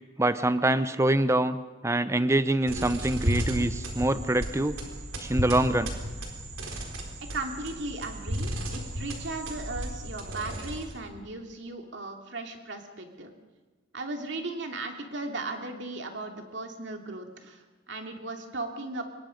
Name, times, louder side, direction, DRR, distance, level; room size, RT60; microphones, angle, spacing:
voice 1, 0.2-1.6 1.8-4.8 5.2-5.9, right 1 dB, 15° right, 13 dB, 0.7 m, -25 dB
sound 1, 2.7-11.1, equal, 85° right, 4.3 m, -34 dB
voice 2, 7.3-13.3 13.9-19.0, right 2 dB, 60° right, 4 dB, 2.7 m, -37 dB
25.0 x 22.0 x 5.3 m, 1.2 s
head